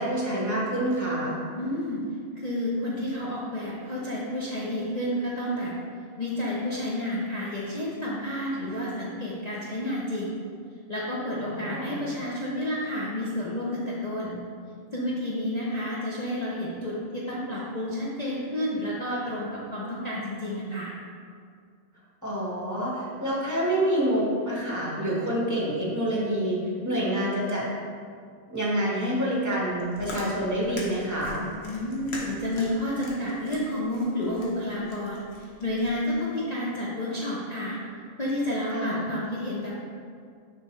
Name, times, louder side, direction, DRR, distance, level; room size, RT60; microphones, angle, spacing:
voice 1, 0.0-1.4 11.4-12.0 22.2-26.6 26.8-27.6 28.5-31.5 38.7-39.0, right 1 dB, 15° right, -5 dB, 1.4 m, -27 dB
voice 2, 1.6-2.0 2.4-5.7 6.2-10.3 10.9-14.4 14.9-20.9 31.7-37.8 38.2-39.7, left 1 dB, 35° left, -7 dB, 0.7 m, -30 dB
Chewing mastication, 29.6-36.1, left 1 dB, 50° left, 1.2 m, -42 dB
6.7 x 5.5 x 3.2 m, 2.2 s
omnidirectional pair, 1.5 m